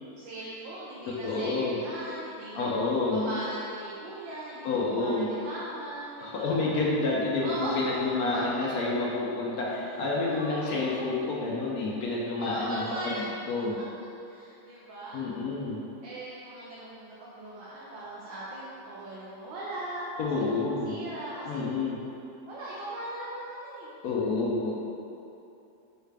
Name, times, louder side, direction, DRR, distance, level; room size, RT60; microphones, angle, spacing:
voice 1, 0.2-2.7 3.1-6.6 7.4-7.8 10.3-11.1 12.4-13.2 14.2-15.3 16.0-20.6 20.8-21.6 22.5-23.9, right 1 dB, 75° right, -8 dB, 1.4 m, -39 dB
voice 2, 1.1-1.8 2.5-3.3 4.6-5.3 6.2-12.8 13.2-13.8 15.1-15.8 20.2-21.0 21.5-22.0 24.0-24.7, left 3 dB, 70° left, -4 dB, 0.9 m, -29 dB
6.5 x 2.4 x 3.3 m, 2.8 s
omnidirectional pair, 2.1 m